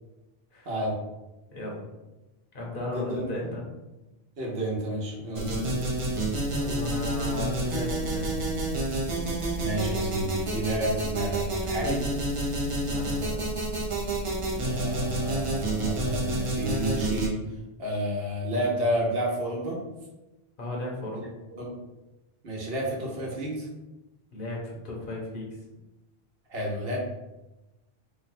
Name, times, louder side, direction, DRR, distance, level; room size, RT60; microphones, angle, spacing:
voice 1, 0.6-1.0 2.9-3.5 4.4-5.5 9.6-12.0 14.5-17.4 17.8-19.8 21.6-21.7 22.4-23.7 26.5-27.0, right 1 dB, 70° right, -3 dB, 1.1 m, -30 dB
voice 2, 1.5-1.9 2.5-3.7 6.4-8.3 12.9-13.5 20.6-21.2 24.3-25.6, left 2 dB, 60° left, -3 dB, 1.0 m, -35 dB
sound 1, 5.4-17.3, right 1 dB, 40° right, 0.6 m, -29 dB
3.1 x 2.2 x 4.1 m, 1.0 s
omnidirectional pair, 1.0 m